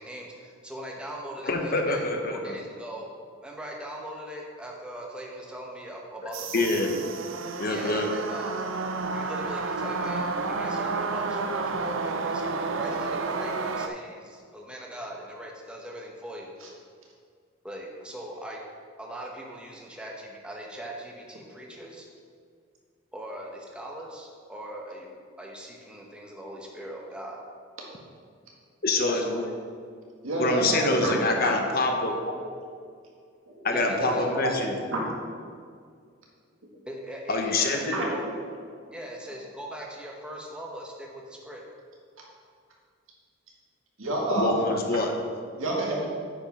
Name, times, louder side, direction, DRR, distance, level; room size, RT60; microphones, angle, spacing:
voice 1, 0.0-3.1 3.4-6.7 7.6-8.6 9.1-16.5 17.6-18.6 19.0-22.1 23.1-27.4 29.1-29.5 33.7-34.6 36.9-38.3 38.9-41.6, right 1 dB, 5° right, -1 dB, 1.0 m, -40 dB
voice 2, 1.4-2.5 6.5-6.9 7.6-8.1 28.8-29.4 30.4-32.1 33.6-34.7 37.3-38.0 44.3-45.1, left 2 dB, 45° left, 3 dB, 1.0 m, -26 dB
sound 1, 6.3-13.9, right 3 dB, 70° right, 0.5 m, -31 dB
voice 3, 30.2-31.5 32.2-32.3 33.5-35.1 37.9-38.2 44.0-44.7 45.6-46.1, right 2 dB, 85° right, -2 dB, 2.0 m, -29 dB
8.9 x 5.3 x 5.4 m, 2.1 s
head